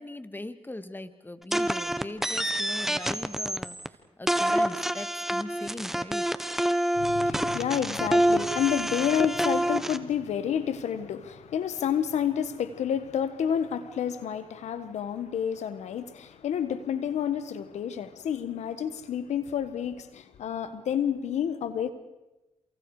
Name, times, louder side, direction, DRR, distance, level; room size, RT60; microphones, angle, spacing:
voice 1, 0.0-6.3, left 2 dB, 15° left, 1.9 m, -40 dB
sound 1, 1.5-3.9 4.3-10.0, right 1 dB, 5° right, 1.5 m, -27 dB
voice 2, 7.0-21.9, left 8 dB, 85° left, 1.5 m, -29 dB
29.5 x 28.5 x 5.0 m
cardioid pair, 65°, 11 cm